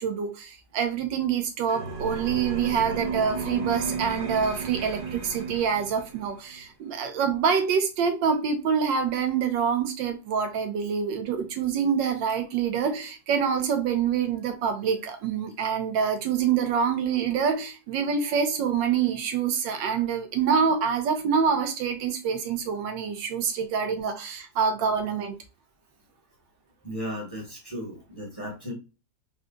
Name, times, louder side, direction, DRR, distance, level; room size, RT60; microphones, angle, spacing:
voice 1, 0.0-25.3, right 6 dB, 85° right, 1.5 m, -26 dB
sound 1, 1.7-6.3, right 4 dB, 55° right, 0.6 m, -33 dB
voice 2, 26.8-28.7, equal, 15° left, 1.1 m, -35 dB
3.8 x 2.3 x 3.8 m
omnidirectional pair, 2.0 m